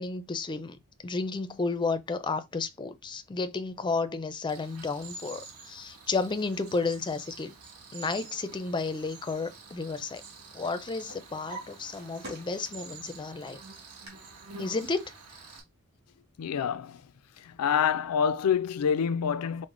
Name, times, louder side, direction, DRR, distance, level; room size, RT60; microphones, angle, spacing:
voice 1, 0.0-7.5 7.9-10.2 10.5-13.6 14.6-15.1, left 4 dB, 20° left, 0.4 m, -32 dB
Cricket, 4.5-15.6, right 4 dB, 80° right, 1.1 m, -48 dB
Drawer open or close, 7.9-10.3 10.6-13.0 13.4-14.1, right 2 dB, 50° right, 2.0 m, -48 dB
voice 2, 16.4-17.0 17.4-19.7, left 7 dB, 85° left, 0.4 m, -27 dB
4.8 x 2.1 x 3.7 m
head